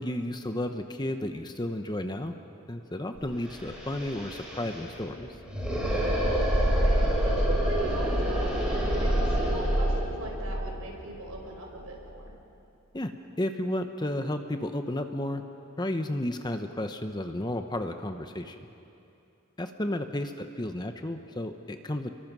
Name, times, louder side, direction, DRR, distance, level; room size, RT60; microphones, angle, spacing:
voice 1, 0.0-2.3 2.7-5.4 12.9-13.1 13.4-15.4 15.8-18.7 19.6-22.1, left 1 dB, 20° left, 7 dB, 0.9 m, -32 dB
sound 1, 3.2-3.3 3.5-12.3, equal, 5° right, 5.5 m, -27 dB
voice 2, 6.2-12.3 19.8-20.1, right 2 dB, 90° right, 0 dB, 5.0 m, -40 dB
29.5 x 23.0 x 6.2 m, 2.7 s
head